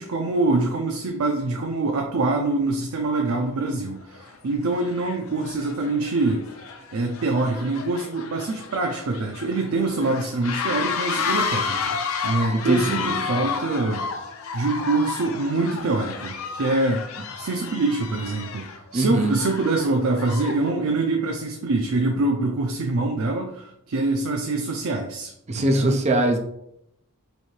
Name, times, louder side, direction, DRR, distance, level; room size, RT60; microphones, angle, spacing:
voice 1, 0.0-6.5 6.9-12.0 12.2-14.0 14.5-17.1 17.4-26.0, right 2 dB, 80° right, 2 dB, 0.5 m, -25 dB
sound 1, 3.3-3.4 4.1-4.4 4.7-20.7, left 5 dB, 80° left, 0.5 m, -31 dB
voice 2, 12.5-13.4 18.9-19.3 25.5-26.4, right 2 dB, 30° right, 4 dB, 0.5 m, -22 dB
3.2 x 2.7 x 4.3 m, 0.78 s
head